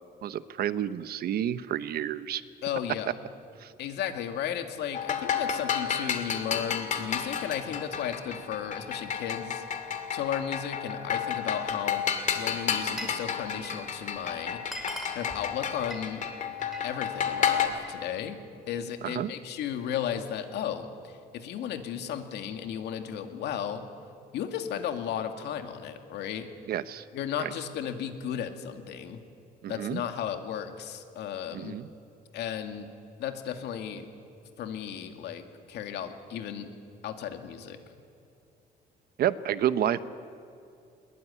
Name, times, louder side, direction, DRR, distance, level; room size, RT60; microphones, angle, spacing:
voice 1, 0.2-2.4 3.6-3.7 19.0-19.3 26.7-27.0 27.4-27.5 29.6-30.0 31.5-31.9 39.2-40.0, right 11 dB, 65° right, 14 dB, 0.9 m, -29 dB
voice 2, 2.6-3.2 3.8-9.6 10.1-12.0 12.3-14.6 15.1-16.2 16.8-18.4 18.7-23.8 24.3-26.5 27.1-29.2 29.7-31.8 32.3-32.9 33.2-34.1 34.6-36.7 37.0-37.8, left 9 dB, 85° left, 6 dB, 2.2 m, -34 dB
sound 1, 4.9-17.7, left 8 dB, 45° left, 2.4 m, -31 dB
Glass, 12.4-13.3 13.5-13.9 14.3-14.4 14.6-16.9 17.3-18.0, equal, ahead, 5.2 m, -41 dB
21.5 x 21.5 x 9.9 m, 2.6 s
cardioid pair, 130°, 17 cm